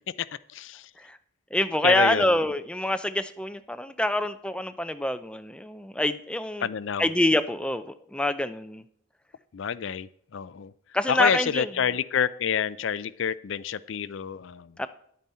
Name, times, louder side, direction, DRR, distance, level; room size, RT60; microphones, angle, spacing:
voice 1, 0.5-0.9 1.8-2.2 6.6-7.1 9.5-10.7 11.1-14.7, left 7 dB, 65° left, 17 dB, 0.4 m, -28 dB
voice 2, 1.5-6.7 7.0-8.8 10.9-11.7 14.8-14.9, left 1 dB, 5° left, 10 dB, 0.4 m, -26 dB
11.0 x 9.0 x 4.3 m, 0.65 s
head